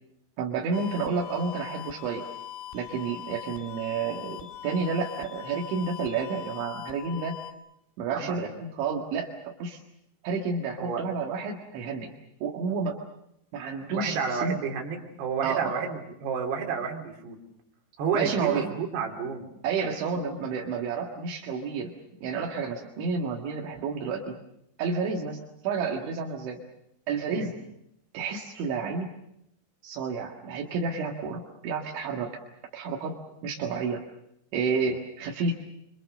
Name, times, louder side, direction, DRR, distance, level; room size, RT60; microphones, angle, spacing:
voice 1, 0.4-2.2 2.7-7.4 8.0-9.8 10.2-12.1 12.4-13.0 13.5-14.6 15.4-15.8 18.1-18.7 19.6-22.0 22.2-24.4 24.8-26.6 27.1-27.6 28.1-29.1 29.8-32.3 32.7-34.0 34.5-35.5, right 5 dB, 80° right, 0 dB, 4.3 m, -30 dB
sound 1, 0.7-7.5, left 10 dB, 85° left, 4.1 m, -41 dB
voice 2, 8.1-8.5 10.8-11.0 13.9-17.4 18.0-19.5 27.3-27.5, right 6 dB, 65° right, 1 dB, 5.1 m, -31 dB
26.0 x 26.0 x 6.6 m, 0.79 s
omnidirectional pair, 5.3 m